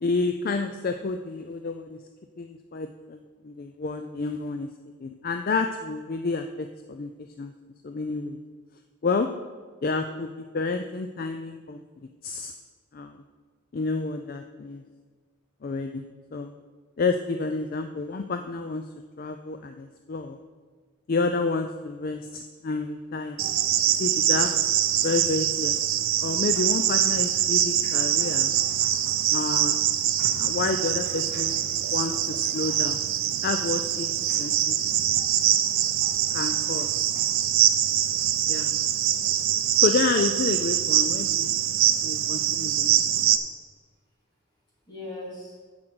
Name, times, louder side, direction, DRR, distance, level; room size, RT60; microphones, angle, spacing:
voice 1, 0.0-2.0 2.4-4.7 5.0-7.1 7.4-7.5 7.8-8.4 9.0-9.3 9.8-11.8 12.2-12.5 12.9-13.2 13.7-14.8 15.6-16.0 16.3-16.5 17.0-18.8 19.2-20.4 21.1-23.4 23.9-24.5 25.0-25.8 26.2-28.5 29.3-29.8 30.4-31.5 31.9-33.0 33.4-34.1 34.4-34.8 36.3-37.1 38.5-38.7 39.8-41.5 42.0-43.0, left 3 dB, 45° left, 7 dB, 0.4 m, -29 dB
Cricket, 23.4-43.4, right 11 dB, 70° right, 0.6 m, -24 dB
voice 2, 28.5-28.9 30.2-30.3 31.3-31.5 32.7-32.8 34.3-34.4 35.1-35.2 36.0-36.4 36.8-36.9 37.1-37.2 38.1-38.2 44.9-45.5, left 1 dB, 20° left, -6 dB, 3.2 m, -43 dB
7.7 x 6.1 x 7.8 m, 1.5 s
head